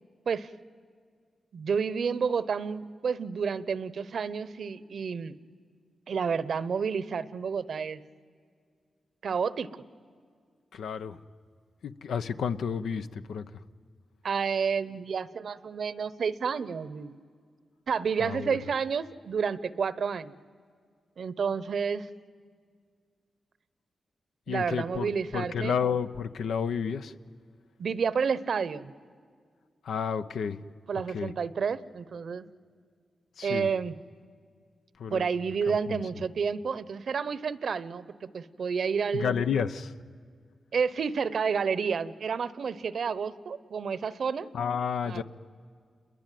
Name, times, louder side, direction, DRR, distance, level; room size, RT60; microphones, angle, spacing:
voice 1, 1.5-5.3 6.1-8.0 9.2-9.7 14.2-17.2 17.9-20.3 21.2-22.1 24.5-25.8 27.8-28.9 30.9-32.4 33.4-33.9 35.1-39.3 40.7-44.5 45.1-45.2, right 6 dB, 65° right, 18 dB, 0.8 m, -30 dB
voice 2, 10.7-11.2 11.8-13.4 18.2-18.6 24.5-27.1 29.8-30.6 31.1-31.3 33.4-33.7 35.0-35.3 35.7-36.0 39.1-39.9 44.5-45.2, left 7 dB, 90° left, 10 dB, 0.8 m, -31 dB
28.5 x 22.0 x 9.2 m, 2.1 s
cardioid pair, 85°, 0 cm